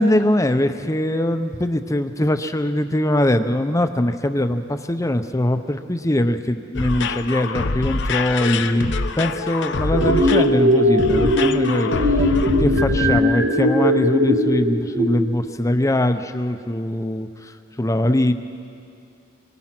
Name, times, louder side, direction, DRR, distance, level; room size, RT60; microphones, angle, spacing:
voice 1, 0.0-8.9 9.2-12.2 12.6-17.5 17.8-18.3, left 1 dB, 15° left, 9 dB, 0.7 m, -21 dB
sound 1, 6.7-13.2, left 3 dB, 60° left, 0.8 m, -25 dB
sound 2, 9.9-15.1, equal, 80° right, 2.3 m, -19 dB
25.5 x 23.5 x 6.0 m, 2.5 s
head